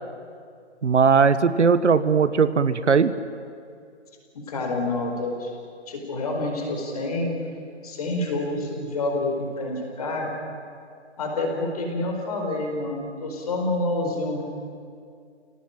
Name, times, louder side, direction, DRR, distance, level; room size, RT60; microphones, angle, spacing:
voice 1, 0.8-3.1, right 5 dB, 80° right, 13 dB, 1.4 m, -19 dB
voice 2, 4.5-5.5 5.9-7.3 7.8-10.3 11.2-14.4, left 2 dB, 35° left, 2 dB, 4.7 m, -28 dB
28.5 x 18.0 x 9.2 m, 2.3 s
hypercardioid pair, 170°, 35 cm